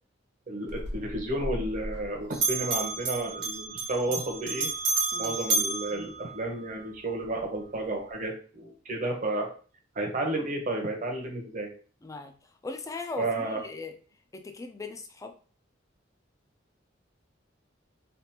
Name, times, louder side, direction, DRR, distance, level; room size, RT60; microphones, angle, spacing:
voice 1, 0.5-4.7 5.2-9.5 10.0-11.7 13.2-13.6, right 1 dB, 45° right, 2 dB, 0.8 m, -32 dB
Bell, 0.7-2.1 2.3-6.8, right 3 dB, 70° right, 1.2 m, -31 dB
voice 2, 12.0-12.3 12.6-13.9 14.3-15.3, left 3 dB, 15° left, 5 dB, 0.4 m, -39 dB
3.4 x 2.4 x 2.8 m, 0.40 s
head